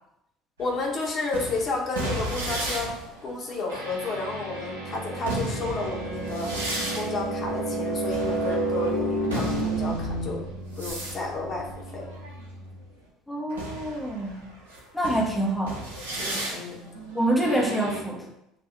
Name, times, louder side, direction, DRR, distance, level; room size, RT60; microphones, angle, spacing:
voice 1, 0.6-3.0 3.2-6.5 6.9-10.4 10.8-11.7 11.9-12.0 16.2-16.8, left 3 dB, 40° left, -2 dB, 1.6 m, -31 dB
sound 1, 0.6-12.8 13.5-18.0, right 1 dB, 75° right, 1.3 m, -31 dB
voice 2, 13.3-14.4 14.9-15.8 17.1-18.2, right 1 dB, 5° left, -3 dB, 1.3 m, -26 dB
6.9 x 2.9 x 4.7 m, 0.81 s
figure-of-eight pair, 65°, 0 cm